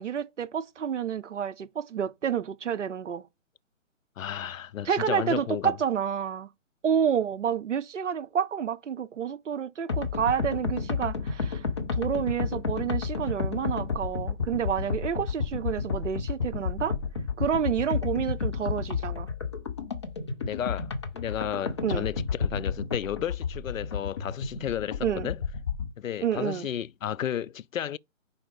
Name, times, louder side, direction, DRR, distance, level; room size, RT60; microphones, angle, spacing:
voice 1, 0.0-3.2 4.9-6.5 6.8-11.6 11.9-16.9 17.4-19.3 21.8-22.1 25.0-25.3 26.2-26.7, right 8 dB, 60° right, 0.7 m, -29 dB
voice 2, 4.2-5.8 20.4-25.4 26.0-28.0, left 10 dB, 75° left, 0.5 m, -33 dB
sound 1, 9.9-25.9, left 5 dB, 20° left, 0.6 m, -31 dB
4.9 x 4.1 x 5.1 m
figure-of-eight pair, 145°, 40 cm